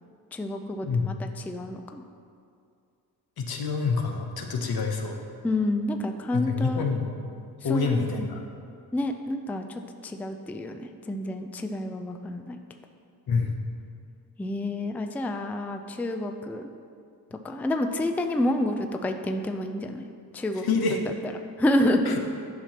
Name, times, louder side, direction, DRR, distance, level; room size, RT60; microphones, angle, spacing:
voice 1, 0.3-1.1 1.5-2.0 5.4-6.9 7.7-8.3 8.9-12.6 14.4-16.7 17.3-20.0 20.3-20.7 20.9-21.3 21.6-22.2, left 1 dB, 5° left, 5 dB, 0.3 m, -29 dB
voice 2, 3.4-5.2 6.3-7.1 7.6-8.4 13.3-13.5 20.6-21.0 22.1-22.2, left 4 dB, 70° left, 3 dB, 0.9 m, -27 dB
10.5 x 5.7 x 2.9 m, 2.4 s
cardioid pair, 75°, 39 cm